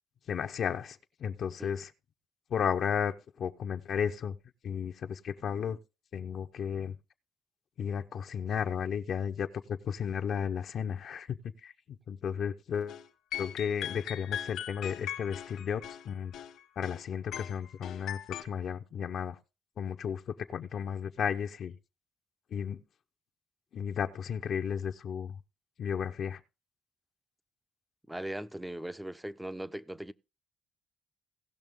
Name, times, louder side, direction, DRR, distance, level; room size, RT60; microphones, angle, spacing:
voice 1, 0.3-1.9 2.5-4.3 4.6-5.8 6.1-6.9 7.8-11.4 11.6-13.0 13.4-16.3 16.8-19.4 19.8-21.7 22.5-22.8 23.7-25.3 25.8-26.4, left 7 dB, 60° left, 0.7 m, -34 dB
sound 1, 12.9-13.1 13.3-17.0 17.3-18.4, left 10 dB, 75° left, 1.4 m, -40 dB
voice 2, 28.1-30.1, right 1 dB, 5° right, 0.5 m, -39 dB
17.5 x 6.1 x 3.6 m
cardioid pair, 100°, 0 cm